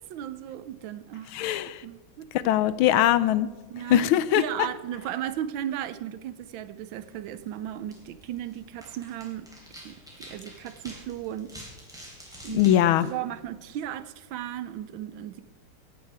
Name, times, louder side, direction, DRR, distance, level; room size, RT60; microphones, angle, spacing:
voice 1, 0.0-1.3 1.8-2.5 3.7-4.1 4.4-9.5 9.8-11.6 12.4-12.7 13.0-15.4, right 11 dB, 75° right, 13 dB, 1.3 m, -35 dB
voice 2, 1.3-1.8 2.3-3.5 3.9-4.4 12.5-13.1, left 12 dB, 80° left, 16 dB, 1.4 m, -21 dB
sound 1, 6.9-13.9, equal, ahead, 3.6 m, -49 dB
17.0 x 8.8 x 4.6 m, 1.2 s
omnidirectional pair, 2.3 m